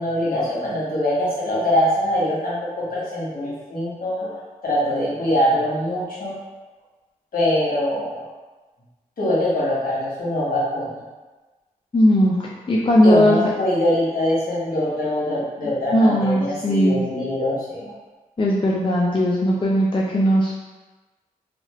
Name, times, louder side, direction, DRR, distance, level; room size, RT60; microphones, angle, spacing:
voice 1, 0.0-6.3 7.3-8.3 9.2-10.9 13.0-17.9, left 1 dB, 70° left, -8 dB, 1.3 m, -23 dB
voice 2, 11.9-12.4 12.7-13.4 15.9-17.0 18.4-20.5, equal, 35° left, -4 dB, 0.5 m, -18 dB
2.9 x 2.4 x 3.0 m, 1.2 s
cardioid pair, 50°, 15 cm